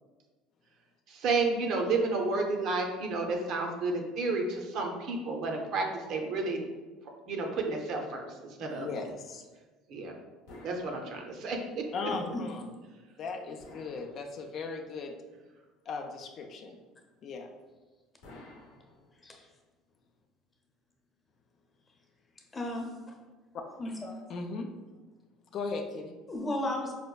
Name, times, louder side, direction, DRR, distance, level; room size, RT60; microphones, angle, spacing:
voice 1, 1.1-6.6 7.3-8.9 9.9-10.1 10.6-12.1, right 3 dB, 60° right, 1 dB, 0.6 m, -31 dB
voice 2, 8.6-9.4 11.9-12.7 13.2-15.1 15.9-16.8 17.2-17.5 24.3-24.7 25.5-26.2, left 4 dB, 55° left, 3 dB, 0.4 m, -37 dB
sound 1, 10.5-11.7 13.6-14.8 18.2-19.5, left 2 dB, 80° left, 0.7 m, -53 dB
voice 3, 22.5-23.0 23.8-24.2 26.3-26.9, left 1 dB, 25° left, 0 dB, 0.8 m, -34 dB
4.9 x 2.2 x 2.3 m, 1.3 s
hypercardioid pair, 75°, 0 cm